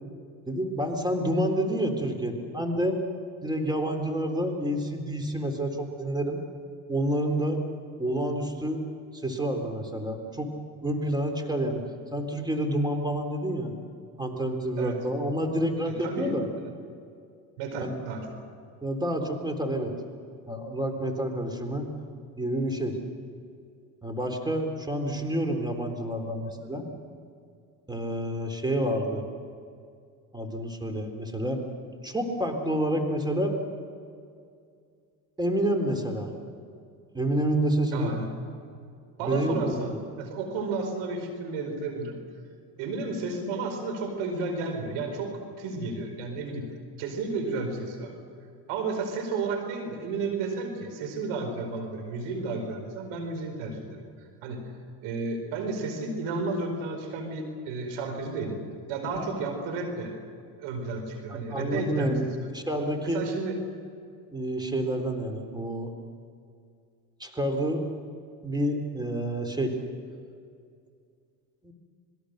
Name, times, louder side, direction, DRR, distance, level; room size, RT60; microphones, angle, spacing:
voice 1, 0.5-3.0 3.4-6.4 6.9-7.6 8.0-8.8 9.2-10.5 10.8-11.8 12.1-13.7 14.2-16.5 17.8-17.9 18.8-19.9 20.5-21.9 22.4-23.0 24.0-26.9 27.9-29.2 30.3-31.6 32.0-33.6 35.4-36.3 37.1-38.1 39.2-40.0 59.1-59.4 61.3-62.3 62.5-63.2 64.3-65.9 67.2-67.8 68.4-69.7 71.6-71.7, right 1 dB, 10° right, 4 dB, 3.9 m, -28 dB
voice 2, 15.9-16.4 17.6-18.3 37.9-38.3 39.2-42.2 42.8-46.7 47.0-48.1 48.7-54.7 55.0-58.6 58.9-60.1 60.6-62.1 63.0-63.5, right 3 dB, 75° right, 4 dB, 5.1 m, -32 dB
27.0 x 21.5 x 6.7 m, 2.3 s
supercardioid pair, 75°, 48 cm